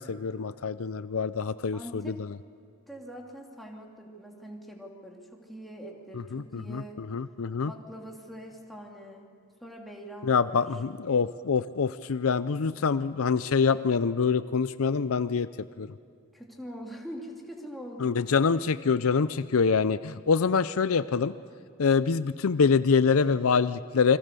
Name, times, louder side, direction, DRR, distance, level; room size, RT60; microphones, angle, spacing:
voice 1, 0.1-2.3 6.3-7.7 10.2-15.5 15.8-15.9 18.0-21.3 21.8-24.2, left 5 dB, 70° left, 14 dB, 0.5 m, -25 dB
voice 2, 1.7-2.2 2.9-7.0 7.6-9.3 9.6-10.8 16.3-18.2, equal, ahead, -1 dB, 2.9 m, -43 dB
29.0 x 22.5 x 6.9 m, 2.4 s
head